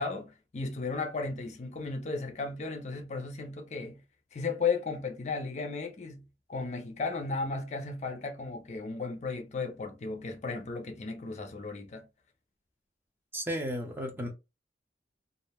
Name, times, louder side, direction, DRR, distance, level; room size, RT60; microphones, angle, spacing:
voice 1, 0.0-4.0 4.3-12.1, left 4 dB, 40° left, 0.4 m, -35 dB
voice 2, 13.3-14.3, equal, 10° right, 0.5 m, -34 dB
2.4 x 2.0 x 3.4 m
head